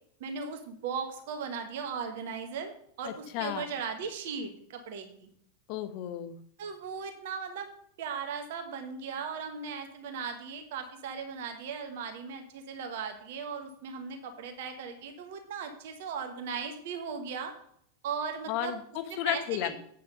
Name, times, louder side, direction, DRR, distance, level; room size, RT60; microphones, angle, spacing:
voice 1, 0.2-2.7 3.0-5.3 6.6-7.7 8.0-17.5 18.0-18.7 19.2-19.8, right 6 dB, 55° right, 6 dB, 1.3 m, -37 dB
voice 2, 3.0-3.7 5.7-6.4 18.5-19.8, left 12 dB, 45° left, 9 dB, 1.0 m, -33 dB
8.5 x 6.3 x 5.3 m, 0.66 s
figure-of-eight pair, 90°, 0 cm